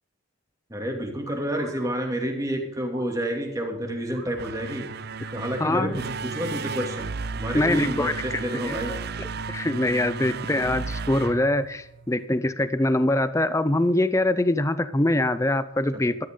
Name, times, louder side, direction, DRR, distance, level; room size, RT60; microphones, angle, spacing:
voice 1, 0.7-4.9 5.3-9.0 15.9-16.0, equal, 15° right, 2 dB, 2.5 m, -29 dB
sound 1, 1.3-1.9 2.9-3.2 4.1-4.4 5.1-5.4 6.2-6.5 7.6-7.9 8.7-9.0 9.8-10.2 11.1-11.5 12.7-13.0, right 3 dB, 65° right, 3.9 m, -48 dB
sound 2, 4.3-12.2, right 4 dB, 50° right, 0.5 m, -34 dB
voice 2, 5.6-6.0 7.5-8.7 9.5-16.3, left 1 dB, 15° left, 13 dB, 0.6 m, -24 dB
13.5 x 13.5 x 3.8 m, 0.83 s
head